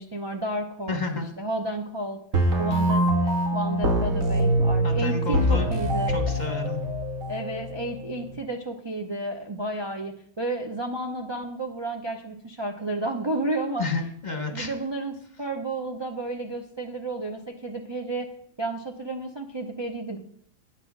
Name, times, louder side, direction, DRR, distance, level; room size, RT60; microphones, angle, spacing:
voice 1, 0.0-1.0 1.4-2.2 2.6-6.1 7.3-13.9 14.5-18.3 18.6-20.2, right 2 dB, 30° right, 2 dB, 0.6 m, -32 dB
voice 2, 0.9-1.3 4.8-5.7 6.1-6.8 13.8-14.7, left 3 dB, 35° left, 5 dB, 1.1 m, -31 dB
sound 1, 2.3-8.3, right 1 dB, 80° right, 2.0 m, -24 dB
9.7 x 6.1 x 5.9 m, 0.66 s
omnidirectional pair, 1.4 m